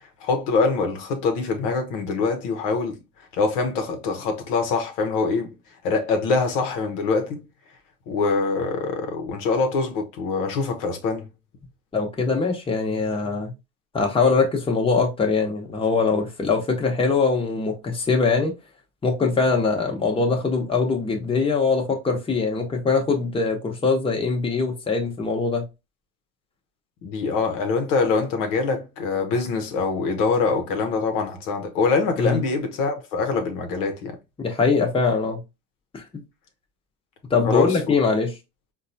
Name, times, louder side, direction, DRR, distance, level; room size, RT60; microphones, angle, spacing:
voice 1, 0.2-3.0 3.4-5.5 5.8-7.4 8.1-11.3 27.0-34.2 37.4-37.8, left 4 dB, 70° left, 0.8 m, -24 dB
voice 2, 11.9-13.5 13.9-18.5 19.0-25.6 32.2-32.4 34.4-35.4 35.9-36.0 37.3-38.3, left 4 dB, 15° left, 1.0 m, -22 dB
4.0 x 2.3 x 2.7 m
supercardioid pair, 105°, 32 cm